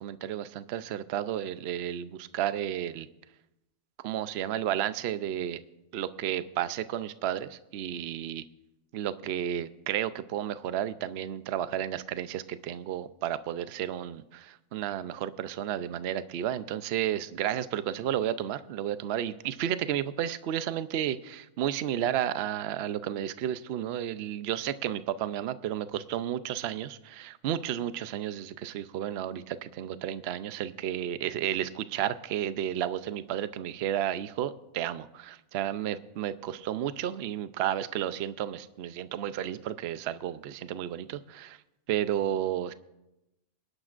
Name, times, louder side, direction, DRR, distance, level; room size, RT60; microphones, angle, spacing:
voice 1, 0.0-3.1 4.0-5.6 5.9-8.4 8.9-41.6 41.9-42.7, right 11 dB, 65° right, 13 dB, 0.8 m, -32 dB
24.0 x 11.5 x 2.5 m, 0.94 s
omnidirectional pair, 1.3 m